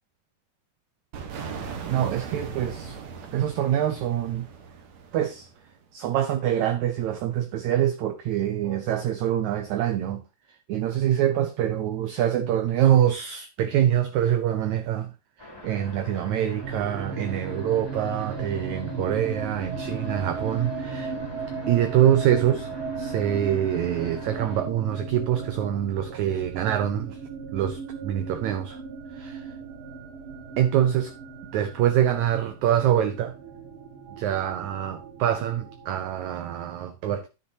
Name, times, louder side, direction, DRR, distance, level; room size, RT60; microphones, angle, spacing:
sound 1, 1.1-5.8, right 6 dB, 60° right, 2.4 m, -39 dB
voice 1, 1.9-3.0 3.3-4.5 5.1-5.5 5.9-10.2 10.7-15.1 15.4-21.1 21.7-22.7 23.0-27.2 27.5-28.8 29.1-29.5 30.6-31.1 31.5-33.3 34.2-37.3, right 10 dB, 80° right, 1.6 m, -25 dB
sound 2, 15.4-24.6, left 1 dB, 5° left, 2.5 m, -44 dB
sound 3, 16.6-36.5, right 4 dB, 45° right, 2.3 m, -37 dB
10.0 x 9.8 x 2.8 m
omnidirectional pair, 4.1 m